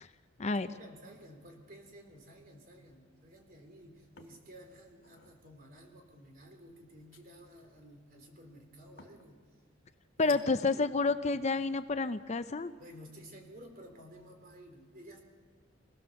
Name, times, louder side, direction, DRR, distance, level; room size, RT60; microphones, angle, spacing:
voice 1, 0.6-9.4 10.2-11.5 12.8-15.2, equal, 45° right, 3 dB, 3.6 m, -53 dB
sound 1, 4.2-4.5 4.9-5.4 7.1-7.7 9.0-9.3 10.3-10.8, left 6 dB, 90° left, 2.3 m, -53 dB
voice 2, 10.2-12.7, left 3 dB, 35° left, 11 dB, 0.6 m, -29 dB
25.0 x 17.5 x 7.1 m, 1.5 s
head